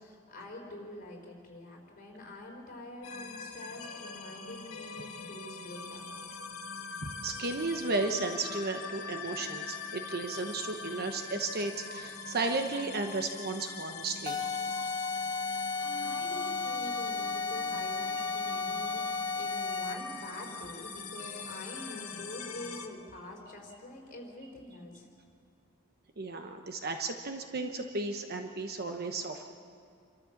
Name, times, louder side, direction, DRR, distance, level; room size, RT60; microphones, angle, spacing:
voice 1, 0.0-6.2 16.0-25.1, left 1 dB, 45° left, 0 dB, 4.3 m, -46 dB
sound 1, 3.0-22.9, left 4 dB, 90° left, 1.7 m, -43 dB
voice 2, 7.0-14.5 26.2-29.5, right 3 dB, 50° right, 4 dB, 1.1 m, -34 dB
sound 2, 14.3-20.2, left 4 dB, 20° left, 0.9 m, -33 dB
28.0 x 13.5 x 7.3 m, 2.5 s
head